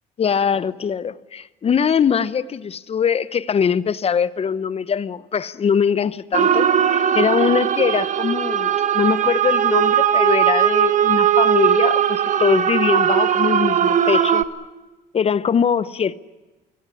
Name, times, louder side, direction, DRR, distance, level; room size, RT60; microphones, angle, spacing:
voice 1, 0.2-14.4 15.1-16.1, left 7 dB, 35° left, 0.9 m, -22 dB
sound 1, 6.3-14.4, right 9 dB, 45° right, 1.6 m, -18 dB
24.5 x 17.0 x 10.0 m
cardioid pair, 110°, 17 cm